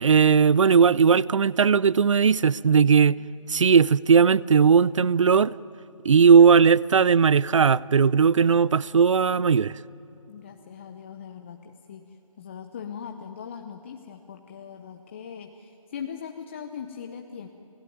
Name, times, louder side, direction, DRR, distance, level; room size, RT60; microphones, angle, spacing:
voice 1, 0.0-3.2 3.5-5.5 6.1-9.8, right 6 dB, 60° right, 0.5 m, -18 dB
voice 2, 10.3-17.5, left 7 dB, 20° left, 0.6 m, -40 dB
28.0 x 17.0 x 9.3 m
figure-of-eight pair, 155°, 18 cm